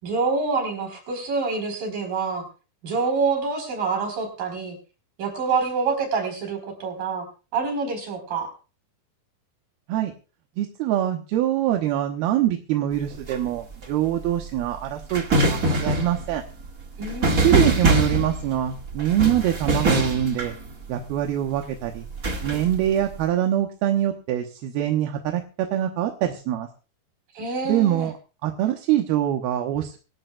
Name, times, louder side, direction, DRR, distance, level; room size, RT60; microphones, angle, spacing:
voice 1, 0.0-2.5 2.8-4.8 5.2-7.3 7.5-8.5 17.0-17.6 27.3-28.1, right 4 dB, 60° right, 4 dB, 6.2 m, -26 dB
voice 2, 10.6-16.4 17.3-20.5 20.9-22.1 22.4-26.7 27.6-28.1 28.4-30.0, right 11 dB, 80° right, 4 dB, 3.1 m, -24 dB
sound 1, 12.9-21.3 22.0-23.2, right 2 dB, 30° right, 1.7 m, -24 dB
25.5 x 12.5 x 2.4 m, 0.35 s
omnidirectional pair, 4.5 m